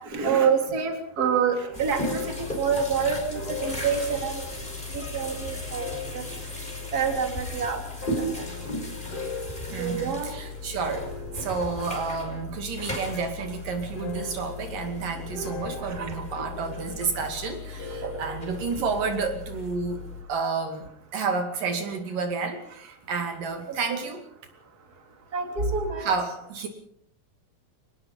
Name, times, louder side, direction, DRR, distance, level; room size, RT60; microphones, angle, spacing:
voice 1, 0.1-4.4 4.9-6.2 6.9-7.8 9.8-10.3 16.0-16.1 18.0-18.1 25.3-26.1, right 6 dB, 25° right, 3 dB, 3.4 m, -27 dB
sound 1, 1.2-12.6 12.9-13.5 14.0-19.3, left 4 dB, 45° left, 4.0 m, -41 dB
sound 2, 1.7-20.2, left 1 dB, 15° left, 5.2 m, -36 dB
voice 2, 9.7-20.0 20.3-24.2 26.0-26.7, right 5 dB, 70° right, 4 dB, 4.1 m, -30 dB
25.0 x 19.5 x 5.6 m, 0.68 s
omnidirectional pair, 4.1 m